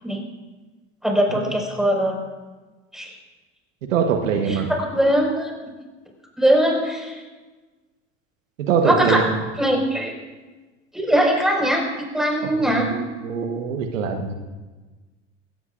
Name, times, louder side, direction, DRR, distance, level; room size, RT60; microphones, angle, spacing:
voice 1, 1.0-2.2 2.9-3.1 4.5-5.5 6.4-7.2 8.8-9.3 9.6-10.1 10.9-12.9, equal, ahead, 0 dB, 5.2 m, -21 dB
voice 2, 3.9-4.7 8.6-9.4 12.6-14.3, right 6 dB, 80° right, 5 dB, 1.4 m, -23 dB
21.5 x 17.5 x 2.6 m, 1.3 s
hypercardioid pair, 80°, 38 cm